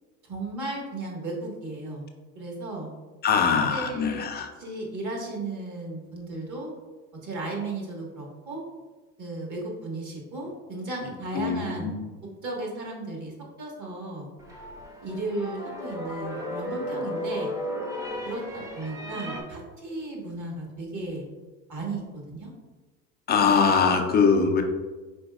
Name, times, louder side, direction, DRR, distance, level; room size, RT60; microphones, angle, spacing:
voice 1, 0.2-2.0 2.3-2.9 3.4-4.3 4.6-6.7 7.2-8.6 9.2-11.9 12.4-14.3 15.0-17.5 18.2-21.2 21.7-22.5, right 2 dB, 35° right, -1 dB, 1.5 m, -35 dB
voice 2, 3.2-4.5 11.3-12.0 23.3-24.6, left 5 dB, 25° left, 4 dB, 0.3 m, -22 dB
sound 1, 14.4-19.4, equal, 5° right, 0.7 m, -34 dB
5.1 x 3.9 x 2.3 m, 1.3 s
supercardioid pair, 95°, 50 cm